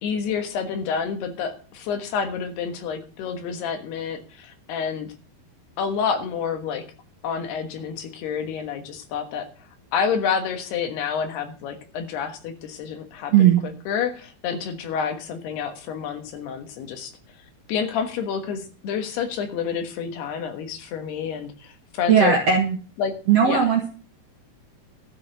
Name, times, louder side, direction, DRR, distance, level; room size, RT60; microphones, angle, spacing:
voice 1, 0.0-5.1 5.8-6.8 7.2-9.5 9.9-13.5 13.9-17.1 17.7-22.4 23.0-23.1 23.4-23.7, left 6 dB, 80° left, 7 dB, 3.4 m, -28 dB
voice 2, 13.3-13.6 22.1-22.8 23.3-23.9, right 8 dB, 70° right, 2 dB, 1.5 m, -17 dB
12.5 x 6.5 x 6.6 m, 0.38 s
omnidirectional pair, 4.6 m